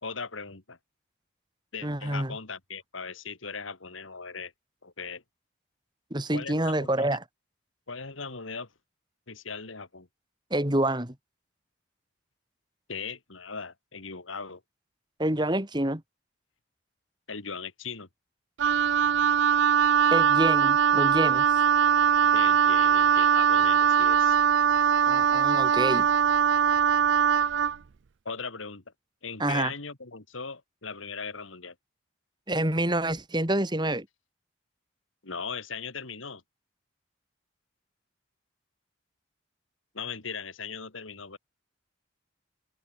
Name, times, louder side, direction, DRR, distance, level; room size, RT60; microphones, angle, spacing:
voice 1, 0.0-0.8 1.7-4.5 4.8-5.2 6.3-7.0 7.9-8.7 9.3-10.1 12.9-14.6 17.3-18.1 22.3-24.4 28.2-28.8 29.2-31.7 35.2-36.4 39.9-41.4, left 5 dB, 85° left, 2.5 m, -38 dB
voice 2, 1.8-2.4 6.1-7.2 10.5-11.2 15.2-16.0 20.1-21.5 25.1-26.1 29.4-29.7 32.5-34.1, right 1 dB, 20° right, 2.6 m, -27 dB
Wind instrument woodwind instrument, 18.6-27.8, right 7 dB, 65° right, 0.5 m, -21 dB
head